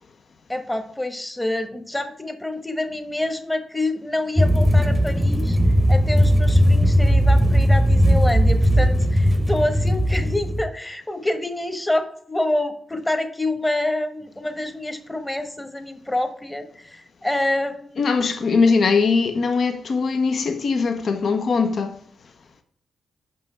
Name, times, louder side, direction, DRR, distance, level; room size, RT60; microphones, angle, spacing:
voice 1, 0.5-5.6 5.9-18.0, left 1 dB, 15° left, 1.0 m, -27 dB
sound 1, 4.4-10.7, equal, 5° right, 0.8 m, -17 dB
voice 2, 18.0-22.0, left 4 dB, 65° left, 0.7 m, -21 dB
5.5 x 5.2 x 4.3 m
cardioid pair, 60°, 0 cm